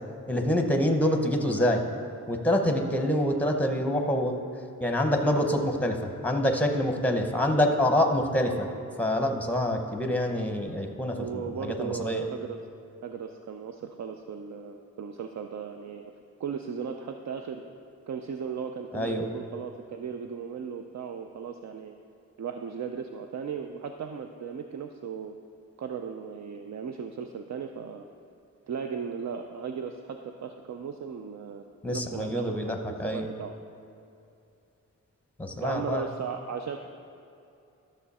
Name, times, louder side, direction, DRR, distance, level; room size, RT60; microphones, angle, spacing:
voice 1, 0.3-1.8 2.3-4.4 4.8-8.7 9.0-12.3 18.9-19.2 31.8-33.3 35.4-36.1, left 1 dB, 5° left, 4 dB, 0.8 m, -26 dB
voice 2, 11.1-12.6 13.0-16.1 16.4-17.6 18.1-21.9 22.4-25.3 25.8-28.1 28.7-33.5 35.6-36.8, right 6 dB, 65° right, 5 dB, 0.5 m, -36 dB
12.5 x 6.7 x 4.2 m, 2.7 s
wide cardioid pair, 130°, 30 cm